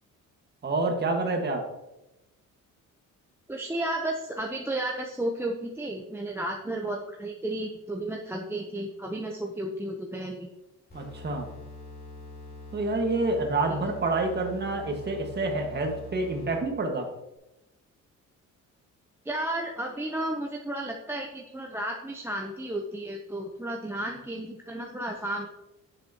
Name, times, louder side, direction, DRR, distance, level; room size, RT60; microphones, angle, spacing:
voice 1, 0.6-1.6 10.9-11.5 12.7-17.1, right 2 dB, 35° right, 3 dB, 1.7 m, -28 dB
voice 2, 3.5-10.5 13.7-13.8 19.2-25.5, right 1 dB, 10° right, 0 dB, 0.7 m, -33 dB
sound 1, 10.9-16.8, left 2 dB, 30° left, 3.3 m, -44 dB
9.6 x 7.6 x 2.9 m, 0.95 s
cardioid pair, 115°, 31 cm